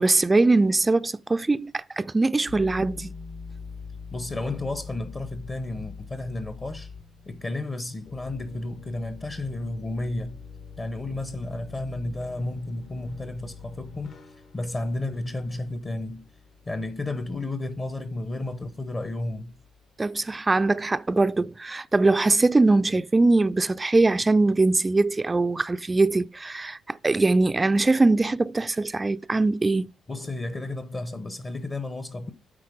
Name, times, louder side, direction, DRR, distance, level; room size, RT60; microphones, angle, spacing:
voice 1, 0.0-3.1 20.0-29.9, right 3 dB, 20° right, 0.4 m, -22 dB
sound 1, 2.5-19.9, left 5 dB, 60° left, 1.6 m, -44 dB
voice 2, 4.1-6.9 7.2-10.4 10.8-14.2 14.5-16.3 16.7-19.6 30.1-32.3, left 2 dB, 30° left, 0.9 m, -32 dB
8.7 x 4.2 x 5.0 m
cardioid pair, 90°, 0 cm